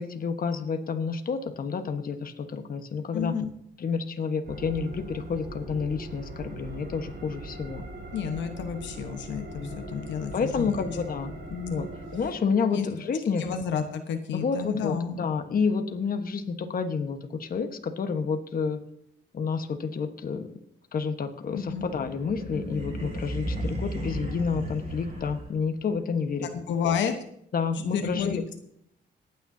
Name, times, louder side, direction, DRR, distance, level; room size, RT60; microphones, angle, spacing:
voice 1, 0.0-3.3 3.8-7.8 9.6-9.8 10.3-11.3 11.7-13.4 14.3-18.8 19.3-20.4 20.9-26.5 27.5-28.4, left 5 dB, 50° left, 7 dB, 1.3 m, -29 dB
voice 2, 3.1-3.5 8.1-10.9 11.5-11.8 12.7-12.9 13.4-15.2 21.5-21.8 26.5-27.2 27.9-28.4, left 7 dB, 85° left, 6 dB, 1.2 m, -31 dB
sound 1, 4.4-12.3, right 2 dB, 70° right, 4.2 m, -41 dB
sound 2, 21.6-25.8, equal, 40° right, 6.4 m, -34 dB
26.5 x 9.2 x 2.8 m, 0.72 s
cardioid pair, 90°, 18 cm